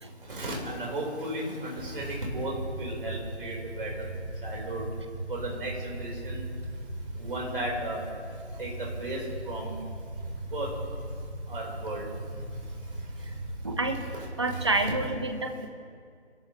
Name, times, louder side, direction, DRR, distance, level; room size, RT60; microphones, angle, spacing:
voice 1, 0.3-2.5 2.8-4.1 4.4-4.8 5.3-6.4 7.2-8.0 8.6-9.2 9.5-9.7 10.5-10.7 11.5-12.0 14.1-14.9, right 1 dB, 50° right, -2 dB, 4.5 m, -35 dB
sound 1, 1.7-14.9, right 1 dB, 85° right, 3.2 m, -38 dB
voice 2, 13.6-14.0 14.4-15.7, right 2 dB, 25° right, 6 dB, 0.8 m, -28 dB
26.0 x 14.0 x 3.2 m, 2.2 s
figure-of-eight pair, 165°, 34 cm